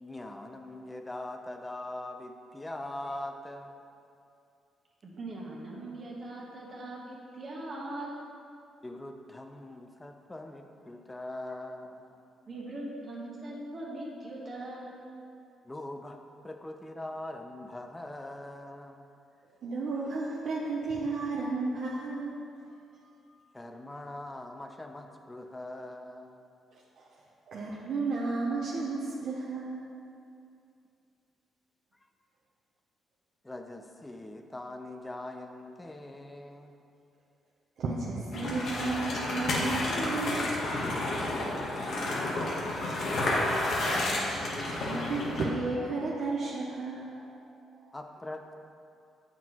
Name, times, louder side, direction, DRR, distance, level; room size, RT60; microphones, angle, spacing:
voice 1, 0.0-3.8 8.8-12.2 15.6-16.2 16.4-19.1 23.5-26.4 33.4-36.7 40.8-44.1 47.9-48.4, left 1 dB, 15° left, 5 dB, 0.5 m, -42 dB
voice 2, 5.0-8.1 12.5-15.0, right 1 dB, 45° right, -4 dB, 1.2 m, -40 dB
voice 3, 19.4-22.8 23.0-23.3 26.7-29.9 37.8-40.5 42.8-47.3 47.7-48.0, right 3 dB, 65° right, -4 dB, 0.6 m, -34 dB
sound 1, 38.3-45.4, left 1 dB, 65° left, 1.1 m, -31 dB
7.4 x 6.1 x 2.9 m, 2.5 s
cardioid pair, 90°, 0 cm